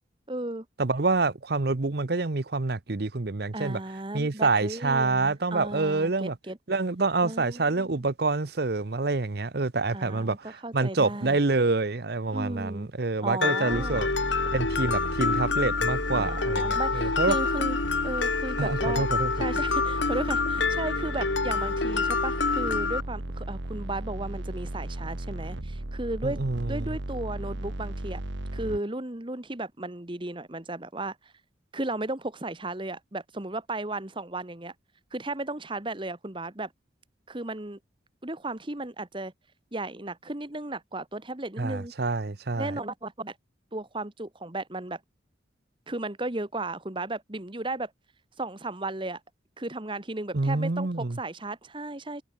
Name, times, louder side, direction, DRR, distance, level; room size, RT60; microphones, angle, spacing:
voice 1, 0.3-0.7 3.5-6.6 7.2-8.0 9.9-11.4 12.3-12.9 13.2-14.0 16.1-17.8 18.0-19.1 19.4-26.4 26.7-28.2 28.5-31.3 31.7-34.7 35.1-36.7 37.3-37.8 38.2-39.3 39.7-41.9 42.6-43.3 43.7-45.0 45.9-47.9 48.4-49.2 49.6-52.2, right 2 dB, 25° right, 1.4 m, -35 dB
voice 2, 0.8-3.8 4.1-6.3 6.7-14.1 14.5-17.3 18.6-19.3 26.2-26.9 41.6-42.7 50.3-51.2, right 3 dB, 55° right, 0.8 m, -27 dB
Mallet percussion, 13.4-23.0, left 4 dB, 75° left, 1.6 m, -27 dB
sound 1, 13.7-28.8, right 1 dB, 75° right, 1.6 m, -35 dB
head